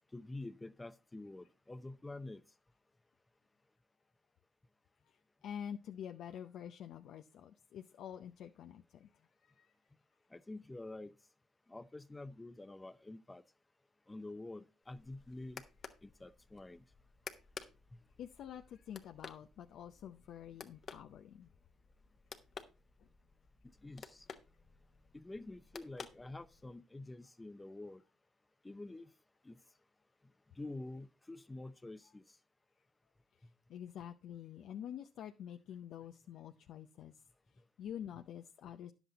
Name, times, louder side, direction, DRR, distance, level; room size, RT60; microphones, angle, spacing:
voice 1, 0.1-2.4 10.3-11.1 11.7-13.4 14.1-15.7 16.0-16.8 17.9-18.0 23.6-24.3 25.1-28.0 28.6-29.1 29.4-29.6 30.5-32.4, left 2 dB, 15° left, 0.7 m, -48 dB
voice 2, 5.4-9.1 9.4-9.7 18.2-21.5 33.7-37.1 37.8-38.9, left 9 dB, 70° left, 0.6 m, -47 dB
sound 1, 14.9-26.8, left 6 dB, 45° left, 1.1 m, -54 dB
10.5 x 8.0 x 4.0 m
cardioid pair, 100°, 0 cm